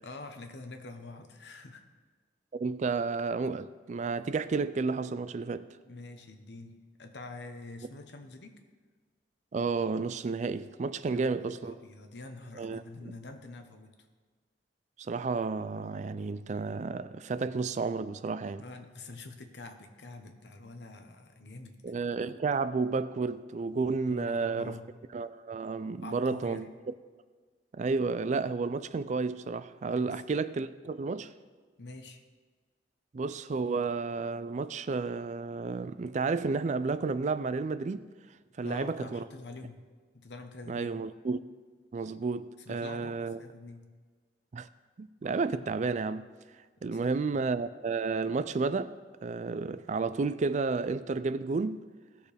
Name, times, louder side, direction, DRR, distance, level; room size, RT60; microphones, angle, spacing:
voice 1, 0.0-1.8 5.8-8.6 11.1-13.9 18.6-21.8 24.1-24.8 26.0-26.7 30.0-30.2 31.8-32.2 38.6-39.8 40.1-41.0 42.6-43.9 46.9-47.4, left 2 dB, 70° left, 1.0 m, -46 dB
voice 2, 2.5-5.8 9.5-11.8 12.6-13.1 15.0-18.6 21.8-24.8 25.1-26.7 27.7-31.3 33.1-38.1 38.6-39.2 40.7-41.4 41.9-43.4 44.5-44.7 45.0-46.3 46.8-48.9 49.2-51.8, right 4 dB, 40° right, 0.4 m, -31 dB
17.0 x 6.7 x 3.4 m
head